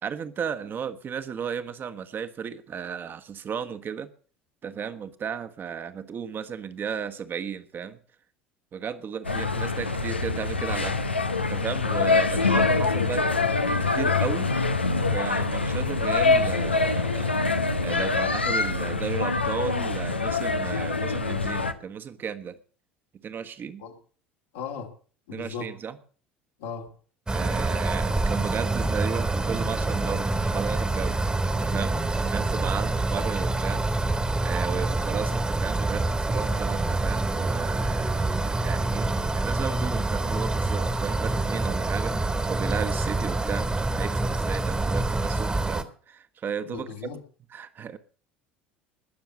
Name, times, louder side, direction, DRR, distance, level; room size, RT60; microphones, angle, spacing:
voice 1, 0.0-4.1 4.6-8.0 8.7-11.0 11.5-13.3 13.9-14.5 15.1-17.3 17.8-22.6 23.2-23.8 25.3-26.0 27.3-31.1 31.6-33.8 34.4-39.1 39.3-46.9 47.5-48.0, right 7 dB, 35° right, 1.4 m, -34 dB
sound 1, 9.2-21.7, left 3 dB, 90° left, 0.8 m, -25 dB
voice 2, 24.5-24.9 25.3-25.7 26.6-26.9 46.6-47.2, left 6 dB, 70° left, 2.5 m, -36 dB
sound 2, 27.3-45.8, right 2 dB, 15° right, 1.6 m, -26 dB
20.5 x 7.0 x 6.3 m
figure-of-eight pair, 65°, 6 cm